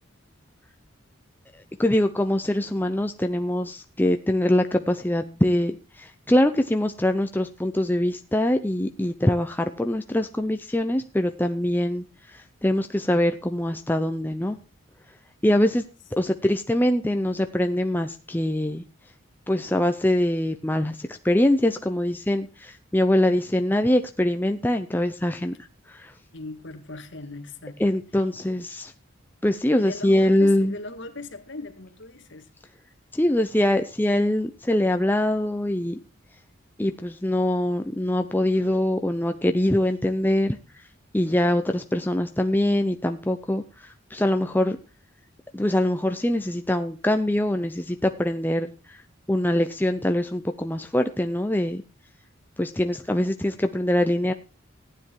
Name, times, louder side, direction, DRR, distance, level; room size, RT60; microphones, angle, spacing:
voice 1, 1.8-12.0 12.3-14.6 15.4-15.8 16.1-18.8 19.5-25.5 25.9-26.1 27.8-28.9 29.4-30.7 33.1-36.0 36.8-40.6 41.1-44.8 45.5-49.0 49.3-51.8 52.6-54.3, left 1 dB, 10° left, 0.6 m, -23 dB
voice 2, 26.3-27.8 29.8-32.5, left 2 dB, 60° left, 2.0 m, -38 dB
15.0 x 9.8 x 4.6 m
head